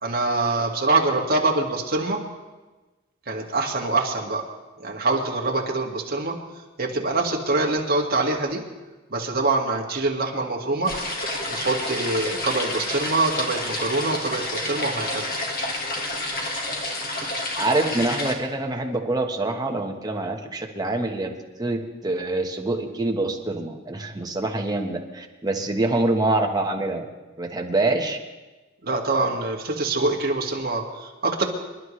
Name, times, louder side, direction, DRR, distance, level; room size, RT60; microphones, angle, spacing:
voice 1, 0.0-2.2 3.3-4.5 4.8-6.4 6.8-8.6 9.1-10.9 11.5-15.3 28.8-31.4, right 3 dB, 50° right, 0 dB, 2.0 m, -24 dB
sound 1, 10.8-18.3, left 2 dB, 45° left, 1.7 m, -29 dB
voice 2, 17.6-21.3 21.6-27.1 27.4-28.2, right 2 dB, 20° right, 2 dB, 1.3 m, -25 dB
26.5 x 11.5 x 3.3 m, 1.2 s
head